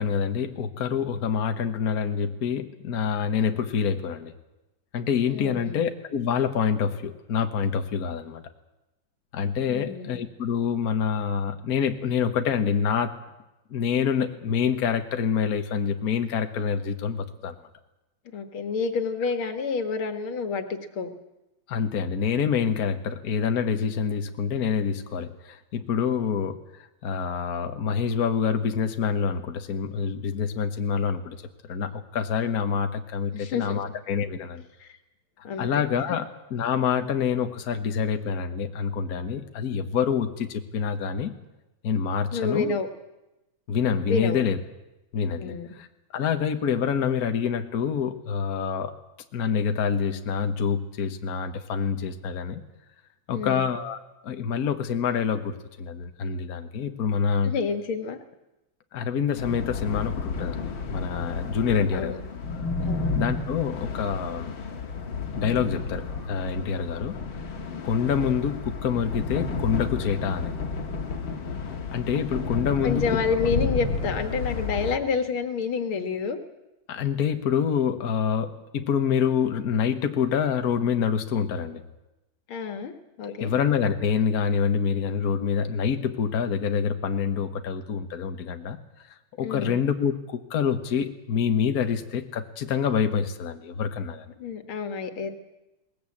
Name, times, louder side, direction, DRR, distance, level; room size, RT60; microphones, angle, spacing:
voice 1, 0.0-4.3 4.9-8.4 9.3-13.1 13.7-17.5 21.7-26.6 27.0-34.6 35.6-41.3 41.8-42.8 43.7-44.6 45.1-45.9 46.1-48.9 49.3-52.6 53.3-54.0 54.2-57.5 58.9-62.1 63.1-64.5 65.4-67.2 67.8-70.5 71.9-73.2 76.9-81.8 83.2-88.8 89.4-94.3, left 7 dB, 50° left, 7 dB, 1.6 m, -26 dB
voice 2, 5.3-5.8 9.7-10.2 18.3-21.1 33.3-33.8 34.8-34.9 35.4-35.7 42.3-42.9 44.1-44.4 45.4-45.7 53.3-53.7 57.4-58.2 61.7-62.2 62.8-63.2 72.8-76.4 82.5-83.5 89.4-89.8 94.4-95.3, left 5 dB, 90° left, 8 dB, 2.5 m, -29 dB
sound 1, 59.4-75.0, left 4 dB, 70° left, 2.5 m, -31 dB
20.5 x 19.5 x 8.7 m, 1.0 s
omnidirectional pair, 2.2 m